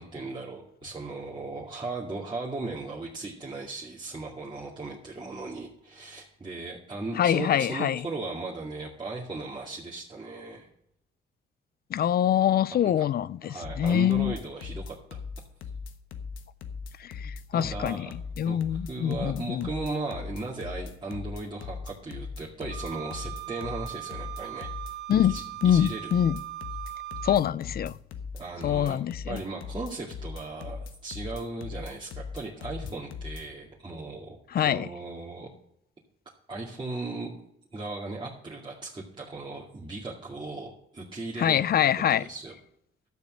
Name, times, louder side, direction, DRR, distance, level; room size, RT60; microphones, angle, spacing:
voice 1, 0.0-10.7 12.7-13.1 13.4-15.2 17.2-18.1 18.4-24.7 25.3-26.1 28.3-29.0 29.2-35.5 36.5-37.3 37.7-42.5, right 3 dB, 25° right, 2.3 m, -37 dB
voice 2, 7.2-8.0 11.9-14.3 17.0-18.1 18.4-19.7 25.1-25.3 25.6-26.4 27.2-27.9 28.6-29.4 34.5-34.9 41.4-42.2, left 10 dB, 50° left, 0.5 m, -25 dB
sound 1, 13.6-33.4, left 5 dB, 80° left, 1.2 m, -39 dB
Wind instrument woodwind instrument, 22.7-27.4, right 16 dB, 55° right, 1.4 m, -39 dB
12.0 x 7.0 x 6.3 m
cardioid pair, 90°, 20 cm